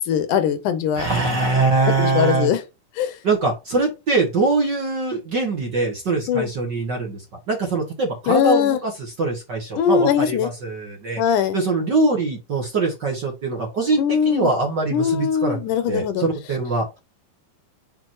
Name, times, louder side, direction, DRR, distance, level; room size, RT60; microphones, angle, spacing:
voice 1, 0.0-1.1 2.0-2.6 3.0-3.2 6.3-6.5 8.3-8.8 9.8-10.5 11.2-11.6 14.0-14.5 14.9-16.2, left 8 dB, 75° left, 2.3 m, -20 dB
voice 2, 0.9-2.5 3.2-11.2 11.5-15.6 15.9-16.8, right 3 dB, 45° right, 1.5 m, -23 dB
6.0 x 5.0 x 4.6 m
omnidirectional pair, 3.7 m